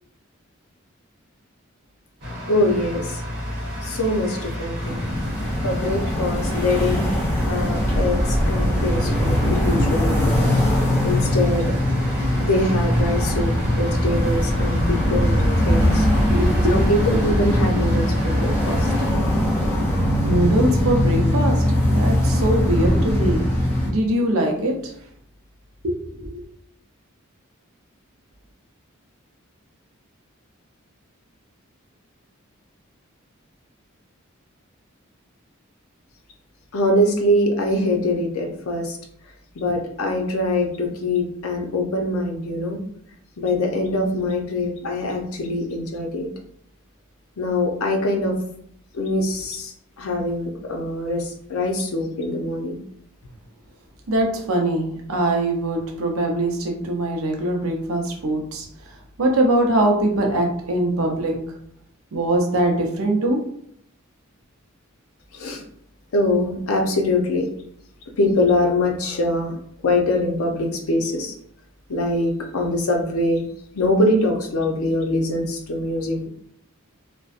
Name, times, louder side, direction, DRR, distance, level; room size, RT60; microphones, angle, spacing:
sound 1, 2.2-19.1, equal, 50° right, 0.9 m, -30 dB
voice 1, 2.5-3.2 3.8-5.0 5.6-7.1 7.3-10.4 11.0-11.6 12.4-15.4 15.7-16.1 16.7-18.9 36.7-39.0 39.6-42.8 43.4-46.3 47.4-48.4 48.9-52.8 65.3-65.6 66.1-67.5 68.2-69.5 69.8-71.3 71.9-73.4 73.7-76.3, left 1 dB, 90° left, 2 dB, 0.5 m, -23 dB
sound 2, 4.8-23.9, left 1 dB, 10° left, 0.8 m, -21 dB
voice 2, 16.2-16.7 20.2-23.5 23.9-24.8 25.8-26.4 54.1-58.7 59.2-61.4 62.1-63.4, right 1 dB, 85° right, 2 dB, 0.6 m, -22 dB
2.5 x 2.1 x 2.4 m, 0.69 s
head